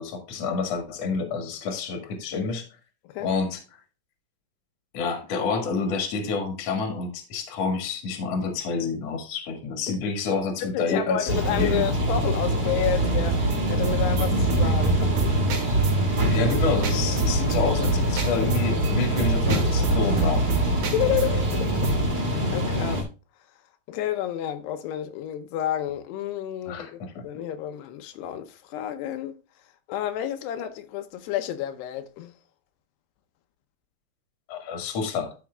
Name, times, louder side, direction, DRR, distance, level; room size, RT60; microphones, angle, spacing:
voice 1, 0.0-2.7 3.2-3.6 4.9-11.9 16.3-20.5 26.7-27.2 34.5-35.3, left 4 dB, 50° left, 2.4 m, -28 dB
voice 2, 10.6-15.4 20.8-23.1 23.9-29.4 29.9-32.3, left 11 dB, 85° left, 2.9 m, -30 dB
sound 1, 11.3-23.0, right 1 dB, 50° right, 0.5 m, -24 dB
sound 2, 13.3-22.1, right 4 dB, 70° right, 3.8 m, -29 dB
13.0 x 6.4 x 2.3 m
omnidirectional pair, 4.7 m